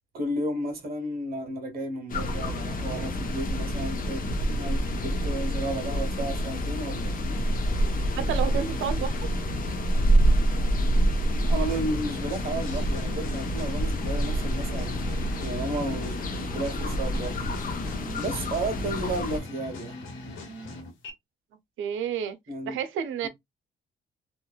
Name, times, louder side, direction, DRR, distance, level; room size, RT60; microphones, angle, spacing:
voice 1, 0.1-7.1 11.5-15.1 15.4-17.8 18.2-20.0 22.5-22.8 23.2-23.3, right 1 dB, 50° right, 1.3 m, -33 dB
sound 1, 2.1-19.4, equal, 45° left, 0.9 m, -27 dB
voice 2, 8.2-9.1 21.8-22.4 22.7-23.3, right 8 dB, 80° right, 0.6 m, -30 dB
sound 2, 11.4-21.1, left 2 dB, 85° left, 1.3 m, -41 dB
3.0 x 2.5 x 2.3 m
cardioid pair, 90°, 20 cm